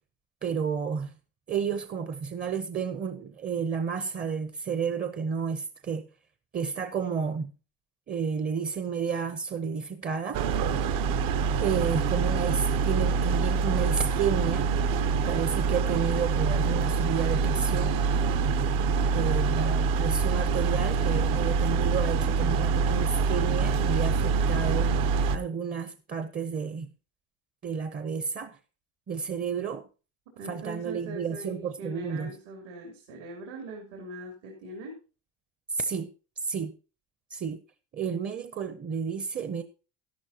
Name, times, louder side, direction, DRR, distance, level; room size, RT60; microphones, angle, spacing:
voice 1, 0.4-1.1 1.5-6.0 6.5-7.5 8.1-10.4 11.6-14.7 15.2-18.0 19.1-24.9 25.3-26.9 27.6-28.6 29.1-29.8 30.4-32.3 35.7-36.1 36.4-36.7 37.3-37.6 37.9-39.6, right 6 dB, 25° right, 0.5 m, -31 dB
sound 1, 10.3-25.4, right 5 dB, 65° right, 0.8 m, -25 dB
voice 2, 30.4-35.0, right 2 dB, 85° right, 3.1 m, -41 dB
12.0 x 11.5 x 2.8 m
cardioid pair, 130°, 36 cm